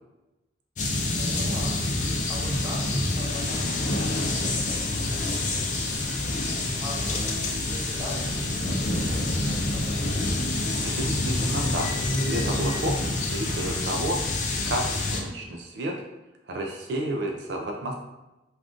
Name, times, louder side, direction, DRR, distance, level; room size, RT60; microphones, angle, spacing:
sound 1, 0.8-15.2, left 2 dB, 40° left, 0.4 m, -27 dB
voice 1, 1.2-1.8 2.3-10.3, equal, 10° right, -5 dB, 0.7 m, -41 dB
voice 2, 10.5-11.9 12.2-14.2 14.7-16.0 16.5-17.9, right 1 dB, 65° right, 1 dB, 0.3 m, -31 dB
2.4 x 2.4 x 3.5 m, 1.0 s
head